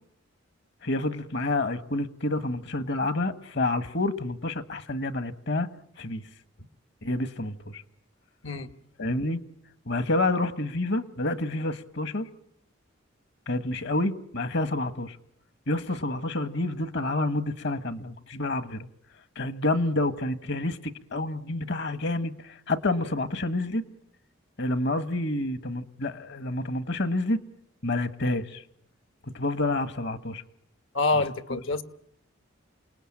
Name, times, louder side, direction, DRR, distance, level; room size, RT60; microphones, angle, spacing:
voice 1, 0.8-5.7 6.0-6.2 7.0-7.8 9.0-9.4 9.9-12.3 13.5-15.2 15.7-18.9 19.3-20.8 21.1-23.8 24.6-27.4 27.8-28.6 29.3-30.4 31.5-31.6, left 2 dB, 60° left, 12 dB, 1.5 m, -28 dB
voice 2, 30.9-31.8, left 3 dB, 75° left, 11 dB, 1.5 m, -26 dB
28.5 x 20.0 x 8.8 m, 0.72 s
head